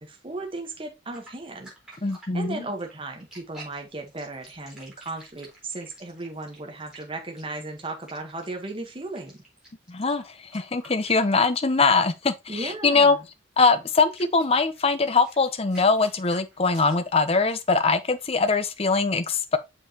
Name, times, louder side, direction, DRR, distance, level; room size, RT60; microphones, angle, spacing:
voice 1, 0.0-1.7 2.3-9.4 12.5-13.3, right 2 dB, 30° right, 1.2 m, -36 dB
Wet Meat, 1.1-11.6 11.9-12.1 13.6-13.7 14.1-17.8, right 1 dB, 5° right, 4.0 m, -50 dB
voice 2, 2.0-2.6 9.9-13.2 13.6-19.6, left 4 dB, 35° left, 0.7 m, -22 dB
7.0 x 5.4 x 2.9 m
head